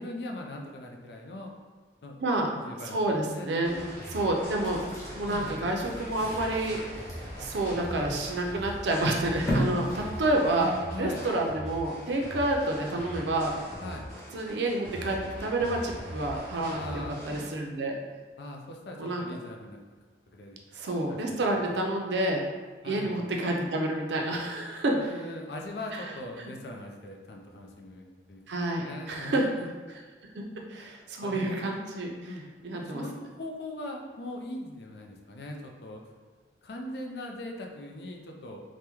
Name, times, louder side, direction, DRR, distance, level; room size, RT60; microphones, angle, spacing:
voice 1, 0.0-1.5 2.0-2.2 2.5-4.0 5.3-5.5 10.5-11.3 13.8-14.1 16.7-17.2 18.4-19.8 20.3-20.6 21.1-21.7 22.8-23.1 24.9-28.4 28.8-29.7 31.2-31.6 32.2-32.5 32.7-36.0 36.6-38.6, left 1 dB, 70° left, 1 dB, 0.4 m, -40 dB
voice 2, 2.9-3.8 4.1-4.8 5.2-7.1 7.4-13.5 14.3-17.9 19.0-19.2 20.7-22.4 22.8-25.0 28.5-29.5 30.3-32.1 32.6-33.0, right 1 dB, 80° right, 1 dB, 0.5 m, -29 dB
sound 1, 3.6-17.5, equal, 50° left, 1.1 m, -42 dB
sound 2, 4.6-10.8, equal, 15° left, 0.6 m, -36 dB
3.4 x 2.1 x 2.9 m, 1.4 s
head